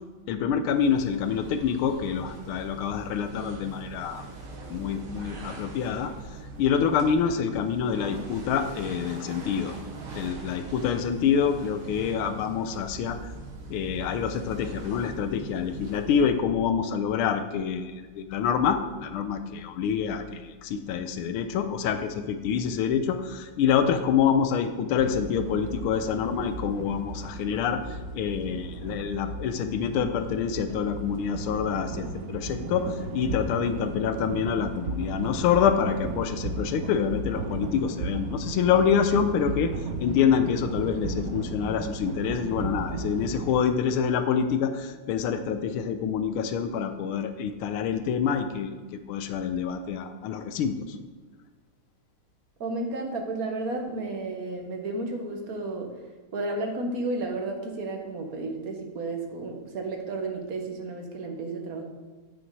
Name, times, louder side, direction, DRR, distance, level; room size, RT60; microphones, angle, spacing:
voice 1, 0.3-4.2 4.7-6.1 6.6-9.8 10.1-13.2 13.7-39.7 40.0-51.0, left 7 dB, 80° left, 8 dB, 1.6 m, -26 dB
sound 1, 0.6-16.5, right 3 dB, 80° right, 2.4 m, -42 dB
sound 2, 25.0-43.6, right 2 dB, 65° right, 0.9 m, -35 dB
voice 2, 52.6-55.9 56.3-61.8, right 2 dB, 45° right, 2 dB, 1.6 m, -32 dB
11.5 x 6.2 x 4.7 m, 1.4 s
omnidirectional pair, 2.4 m